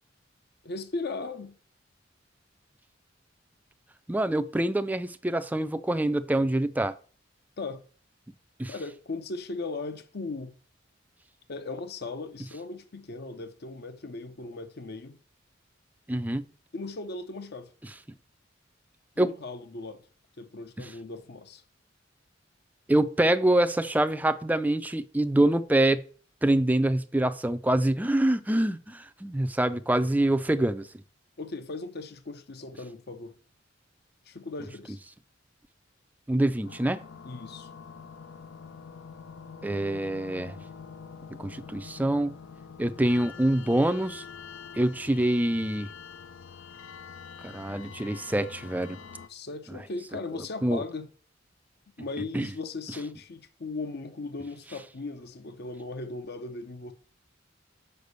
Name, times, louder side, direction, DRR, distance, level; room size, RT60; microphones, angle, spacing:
voice 1, 0.6-1.6 7.6-7.8 8.7-10.5 11.5-15.2 16.7-17.7 19.2-20.1 20.4-21.6 31.4-33.4 34.3-35.0 37.2-37.7 49.3-51.1 52.0-56.9, left 3 dB, 55° left, 0.8 m, -37 dB
voice 2, 4.1-7.0 8.6-8.7 16.1-16.5 19.2-19.3 22.9-26.0 26.4-30.9 36.3-37.0 39.6-40.6 41.4-42.3 42.8-44.2 44.8-45.9 47.4-49.0 50.6-50.8 52.3-52.5, right 1 dB, 10° right, 0.4 m, -25 dB
sound 1, 36.6-49.3, left 6 dB, 90° left, 0.6 m, -45 dB
6.7 x 5.1 x 6.7 m
head